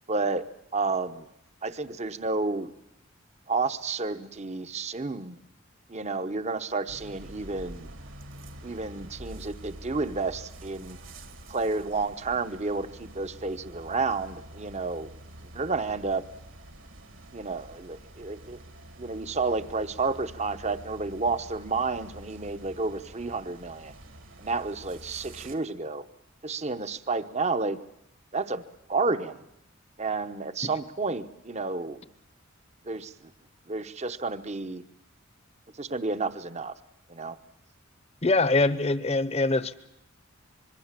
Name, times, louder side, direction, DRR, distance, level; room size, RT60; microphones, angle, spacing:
voice 1, 0.1-0.5 0.7-1.3 1.6-2.7 3.5-5.4 5.9-7.9 8.6-11.0 11.5-15.1 15.5-16.2 17.3-18.6 19.0-23.9 24.4-26.0 26.4-27.8 28.3-28.6 28.9-29.5 30.0-32.0 32.9-33.3 33.7-34.8 35.8-36.7 37.1-37.4, right 3 dB, 35° right, 12 dB, 0.9 m, -30 dB
sound 1, 6.9-25.5, right 1 dB, 65° right, 2.2 m, -47 dB
voice 2, 38.2-39.7, left 2 dB, 30° left, 15 dB, 0.9 m, -23 dB
25.5 x 22.0 x 7.5 m, 0.81 s
head